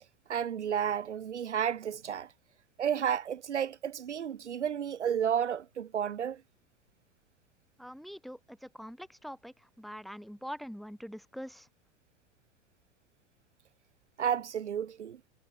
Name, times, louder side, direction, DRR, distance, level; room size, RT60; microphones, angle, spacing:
voice 1, 0.3-2.3 2.8-6.4 14.2-15.2, right 8 dB, 75° right, 1.3 m, -32 dB
voice 2, 7.8-11.7, equal, ahead, 5.6 m, -44 dB
figure-of-eight pair, 85°, 35 cm